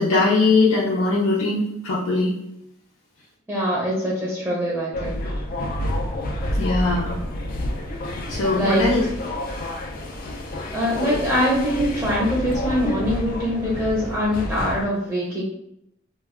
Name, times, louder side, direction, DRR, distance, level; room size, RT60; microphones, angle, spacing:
voice 1, 0.0-2.3 6.6-7.2 7.6-7.7 8.3-9.0 10.2-10.4, left 3 dB, 85° left, -6 dB, 0.6 m, -20 dB
voice 2, 3.5-5.2 8.5-8.8 10.7-15.4, equal, 5° right, -6 dB, 0.6 m, -23 dB
sound 1, 4.9-14.9, left 1 dB, 45° left, 0.3 m, -29 dB
2.2 x 2.2 x 3.5 m, 0.78 s
head